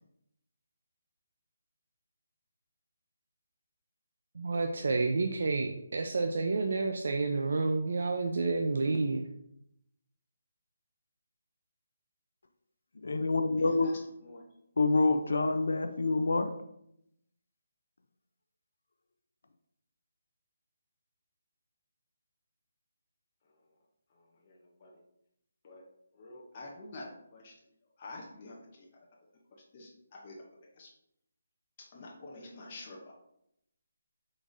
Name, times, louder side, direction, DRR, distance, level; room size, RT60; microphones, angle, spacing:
voice 1, 4.3-9.3, right 3 dB, 60° right, 4 dB, 0.4 m, -30 dB
voice 2, 13.0-13.9 14.8-16.6, left 3 dB, 75° left, 8 dB, 0.4 m, -27 dB
voice 3, 13.6-13.9 14.2-14.4 24.1-25.0 25.6-25.9 26.1-27.5 28.0-28.9 29.5-30.4 30.8-30.9 31.9-33.1, left 2 dB, 30° left, -2 dB, 0.6 m, -48 dB
4.7 x 3.9 x 2.6 m, 0.77 s
hypercardioid pair, 170°, 0 cm